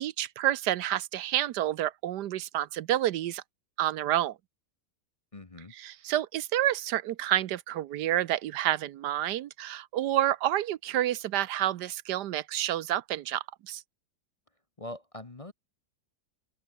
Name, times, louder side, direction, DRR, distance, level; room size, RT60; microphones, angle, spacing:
voice 1, 0.0-3.4 3.8-4.4 5.7-13.8, right 13 dB, 80° right, 1.3 m, -29 dB
voice 2, 5.3-5.7 14.8-15.5, left 1 dB, 25° left, 1.0 m, -42 dB
open air
omnidirectional pair, 1.8 m